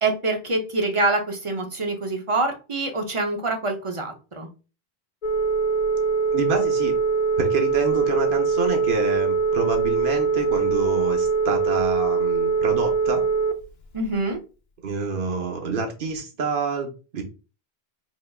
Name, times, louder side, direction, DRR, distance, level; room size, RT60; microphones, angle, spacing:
voice 1, 0.0-4.5 13.9-14.4, right 2 dB, 35° right, 3 dB, 0.6 m, -25 dB
Telephone, 5.2-13.5, right 5 dB, 50° left, 0.7 m, -22 dB
voice 2, 6.3-6.9 7.4-13.2 14.8-17.2, right 4 dB, 55° right, 4 dB, 1.0 m, -27 dB
4.3 x 3.4 x 2.3 m, 0.33 s
omnidirectional pair, 1.1 m